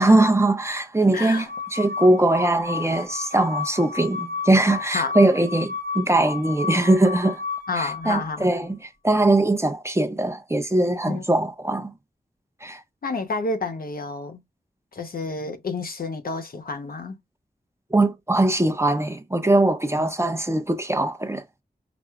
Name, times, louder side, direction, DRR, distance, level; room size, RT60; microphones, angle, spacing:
voice 1, 0.0-7.4 7.7-11.9 12.6-12.8 17.9-21.6, right 2 dB, 15° right, 0.6 m, -21 dB
voice 2, 1.1-1.5 3.3-3.4 4.9-5.1 7.7-8.5 11.1-11.2 13.0-14.4 14.9-17.2 20.0-20.1, left 3 dB, 70° left, 0.9 m, -30 dB
sound 1, 1.5-8.5, left 5 dB, 75° right, 0.9 m, -32 dB
6.0 x 2.1 x 2.3 m
wide cardioid pair, 85°, 16 cm